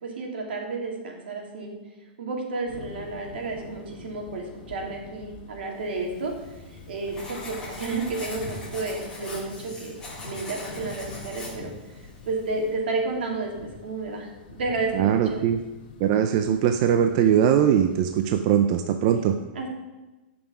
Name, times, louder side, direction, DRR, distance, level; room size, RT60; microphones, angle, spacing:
voice 1, 0.0-1.7 2.2-6.3 6.9-10.0 10.2-11.7 12.2-15.4 19.5-19.7, right 3 dB, 80° right, 0 dB, 3.0 m, -31 dB
sound 1, 2.7-18.4, left 3 dB, 45° left, 2.3 m, -46 dB
Writing, 6.0-12.8, left 2 dB, 10° left, 2.8 m, -41 dB
voice 2, 14.9-15.6 16.0-19.3, right 9 dB, 35° right, 7 dB, 0.5 m, -21 dB
16.0 x 6.1 x 5.0 m, 1.1 s
supercardioid pair, 170°, 6 cm